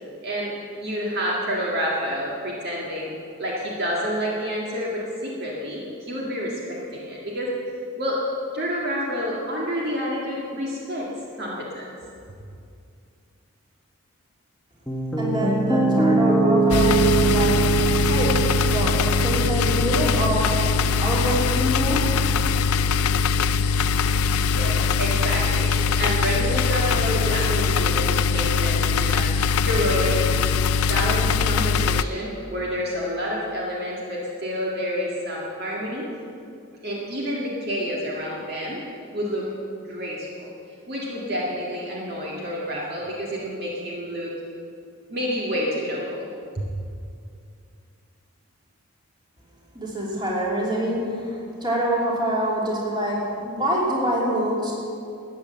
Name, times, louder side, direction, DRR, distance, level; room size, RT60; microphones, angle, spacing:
voice 1, 0.2-0.5 0.8-3.1 3.4-7.6 8.0-8.2 8.5-11.1 11.4-11.9 24.5-29.3 29.6-30.3 30.8-36.1 36.8-38.8 39.1-40.5 40.9-44.3 45.1-46.3 46.5-46.6, equal, 45° right, -4 dB, 1.9 m, -28 dB
Piano, 14.9-23.0, right 3 dB, 10° left, 0.9 m, -24 dB
voice 2, 15.2-17.6 18.0-18.4 18.7-18.9 19.2-20.5 21.0-22.0 49.7-54.7, equal, 20° right, -4 dB, 2.7 m, -25 dB
sound 1, 16.7-32.0, left 5 dB, 85° left, 0.4 m, -22 dB
13.5 x 9.1 x 7.5 m, 2.5 s
head